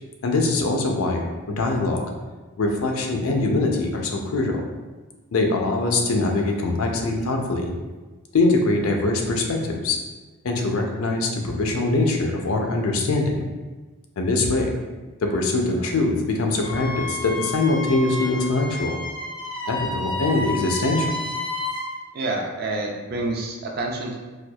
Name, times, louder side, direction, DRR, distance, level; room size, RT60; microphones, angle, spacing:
voice 1, 0.2-2.1 2.6-4.6 5.3-7.7 8.3-10.0 10.4-13.3 14.2-14.7 15.2-19.0 19.7-21.1, left 2 dB, 75° left, 2 dB, 0.5 m, -23 dB
Wind instrument woodwind instrument, 16.6-21.9, left 1 dB, 20° left, 0.4 m, -31 dB
voice 2, 22.1-24.2, right 2 dB, 45° right, 0 dB, 0.4 m, -28 dB
4.3 x 2.4 x 2.3 m, 1.3 s
head